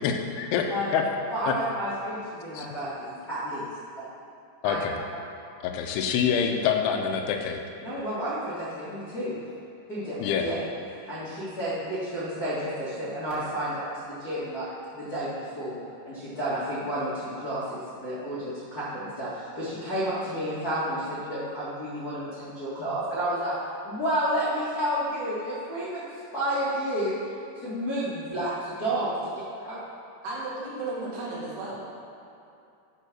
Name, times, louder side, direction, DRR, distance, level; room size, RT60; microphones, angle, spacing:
voice 1, 0.0-1.0 1.5-1.6 2.6-2.7 4.6-5.0 5.6-7.6 10.2-10.5, left 7 dB, 80° left, 3 dB, 2.7 m, -26 dB
voice 2, 1.3-3.6 4.0-4.1 4.6-4.8 7.8-9.4 9.9-10.6 10.9-23.6 23.8-27.2 27.5-29.3 29.6-29.8, right 1 dB, 45° left, -12 dB, 1.2 m, -31 dB
voice 3, 30.2-31.8, right 2 dB, 75° right, -6 dB, 3.9 m, -34 dB
11.0 x 4.7 x 6.2 m, 2.6 s
omnidirectional pair, 4.9 m